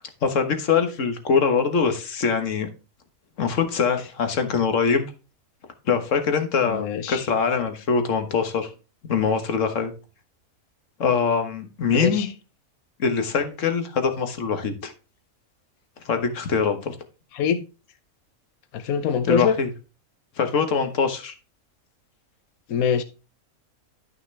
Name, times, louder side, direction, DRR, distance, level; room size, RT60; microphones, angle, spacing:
voice 1, 0.2-2.7 3.4-5.1 5.9-8.7 9.1-9.9 11.0-12.3 13.0-14.9 16.1-17.0 19.3-19.7 20.4-21.3, left 5 dB, 60° left, 1.7 m, -23 dB
voice 2, 6.6-7.3 12.0-12.3 17.3-17.6 18.7-19.6 22.7-23.0, left 7 dB, 80° left, 1.2 m, -24 dB
12.5 x 5.9 x 3.4 m
omnidirectional pair, 1.5 m